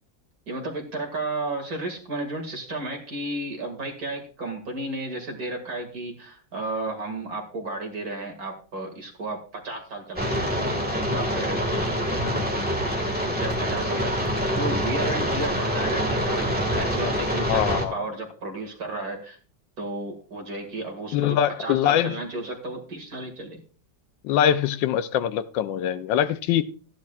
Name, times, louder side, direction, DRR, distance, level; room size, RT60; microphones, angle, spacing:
voice 1, 0.5-11.6 13.4-19.4 19.8-23.6, right 2 dB, 55° right, 2.5 m, -33 dB
sound 1, 10.2-17.9, equal, 5° right, 1.4 m, -25 dB
voice 2, 12.2-12.7 17.5-18.1 21.1-22.2 24.2-26.6, left 10 dB, 85° left, 1.4 m, -23 dB
14.5 x 10.5 x 2.4 m
omnidirectional pair, 2.0 m